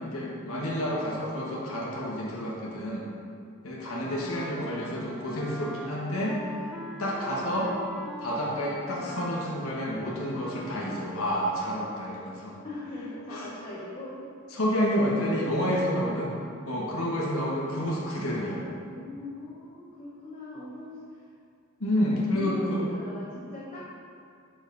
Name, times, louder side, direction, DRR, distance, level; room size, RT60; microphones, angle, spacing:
voice 1, 0.0-3.1 3.6-6.4 7.0-7.7 8.2-12.6 13.3-13.4 14.5-16.4 16.7-18.6 21.8-22.8, equal, 80° left, -5 dB, 1.2 m, -29 dB
Wind instrument woodwind instrument, 4.0-11.4, equal, 5° right, 0.4 m, -42 dB
voice 2, 4.2-5.2 7.6-7.8 12.6-14.2 17.7-21.3 22.3-23.9, left 1 dB, 30° left, -8 dB, 0.9 m, -41 dB
6.3 x 5.4 x 3.9 m, 2.3 s
head